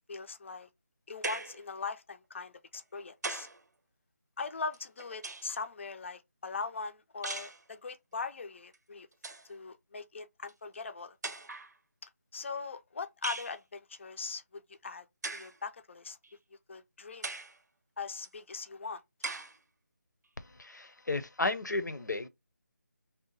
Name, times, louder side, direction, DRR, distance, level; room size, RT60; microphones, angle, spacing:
voice 1, 0.1-0.7 1.1-3.5 4.4-9.1 9.5-11.2 12.0-15.1 15.3-16.2 16.7-17.3 18.0-19.0, left 4 dB, 45° left, 0.4 m, -41 dB
sound 1, 1.2-1.6 2.7-3.6 4.7-5.6 7.2-7.6 8.7-8.8 9.1-9.5 10.5-10.6 11.2-11.7 13.2-13.6 15.2-15.6 16.2-16.3 17.2-17.6 18.2-18.3 19.2-19.6, right 3 dB, 70° right, 0.6 m, -39 dB
voice 2, 20.6-22.3, left 2 dB, 85° left, 0.7 m, -33 dB
2.8 x 2.2 x 3.9 m
figure-of-eight pair, 160°, 10 cm